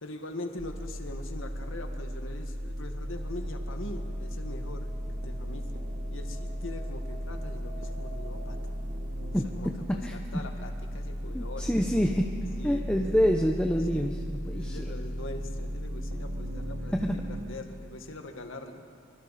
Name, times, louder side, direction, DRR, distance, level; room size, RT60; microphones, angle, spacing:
voice 1, 0.0-8.7 9.2-11.7 12.6-13.1 13.9-16.9 17.3-18.8, left 2 dB, 75° left, 5 dB, 1.8 m, -43 dB
sound 1, 0.6-17.4, equal, 70° right, 1.5 m, -36 dB
sound 2, 2.1-12.9, right 2 dB, 40° right, 5.2 m, -53 dB
voice 2, 9.3-9.7 10.0-10.2 11.3-12.3 12.6-14.9 16.9-17.2, equal, 5° left, 2 dB, 0.8 m, -27 dB
26.0 x 25.0 x 4.2 m, 2.3 s
head